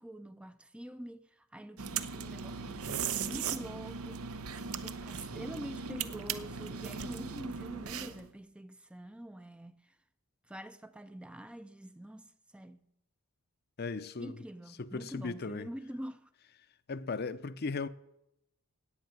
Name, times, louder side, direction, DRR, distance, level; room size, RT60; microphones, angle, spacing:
voice 1, 0.0-10.0 10.4-12.9 14.2-16.3, equal, 5° right, 0.4 m, -46 dB
sound 1, 1.8-8.3, right 6 dB, 75° right, 0.9 m, -38 dB
voice 2, 13.8-14.4 14.8-15.7 16.9-17.9, left 4 dB, 45° left, 0.6 m, -37 dB
17.0 x 6.4 x 9.3 m
head